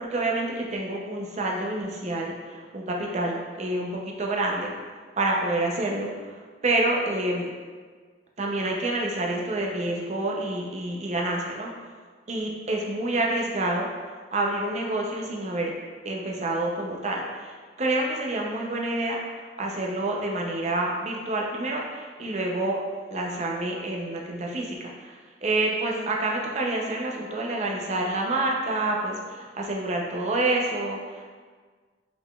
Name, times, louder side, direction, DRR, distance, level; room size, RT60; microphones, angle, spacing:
voice 1, 0.0-4.7 5.2-7.5 8.4-11.7 12.3-15.7 16.0-19.2 19.6-22.8 23.1-31.2, right 2 dB, 35° right, -1 dB, 0.6 m, -28 dB
5.0 x 3.9 x 2.3 m, 1.5 s
head